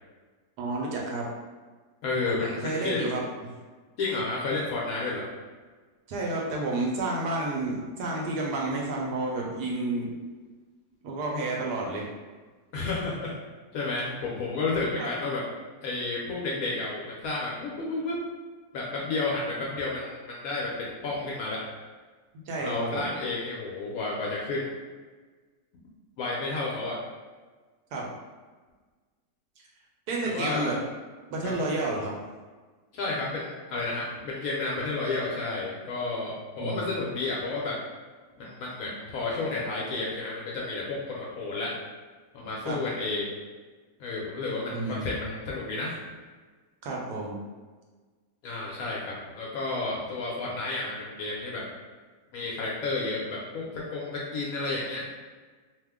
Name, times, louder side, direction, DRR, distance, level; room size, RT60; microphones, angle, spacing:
voice 1, 0.6-1.3 2.4-3.3 6.1-10.1 11.0-12.1 15.0-15.1 22.5-23.1 27.9-28.1 30.1-30.8 31.3-32.2 36.6-37.0 42.6-42.8 44.7-45.3 46.8-47.4, right 2 dB, 75° right, -2 dB, 1.1 m, -30 dB
voice 2, 2.0-3.0 4.0-5.2 12.7-13.3 13.7-15.4 15.8-18.2 18.7-21.6 22.6-24.7 26.2-27.0 30.3-30.7 31.4-31.7 32.9-37.8 38.4-41.7 42.3-43.3 44.0-46.0 48.4-51.6 52.3-55.0, left 3 dB, 70° left, -4 dB, 0.9 m, -31 dB
2.8 x 2.1 x 3.4 m, 1.4 s
omnidirectional pair, 1.9 m